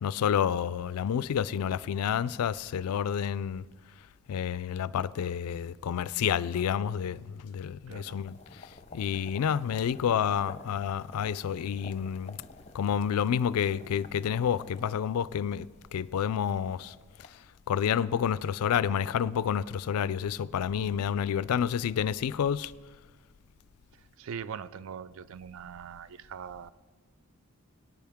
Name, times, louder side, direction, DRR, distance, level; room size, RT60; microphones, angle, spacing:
voice 1, 0.0-3.6 4.3-8.3 8.9-12.4 12.7-15.7 15.9-16.9 17.7-22.7, left 8 dB, 85° left, 0.3 m, -29 dB
voice 2, 7.9-8.2 24.2-26.7, right 7 dB, 60° right, 0.3 m, -41 dB
sound 1, 8.2-17.3, left 3 dB, 30° left, 0.7 m, -51 dB
18.0 x 9.6 x 3.5 m
head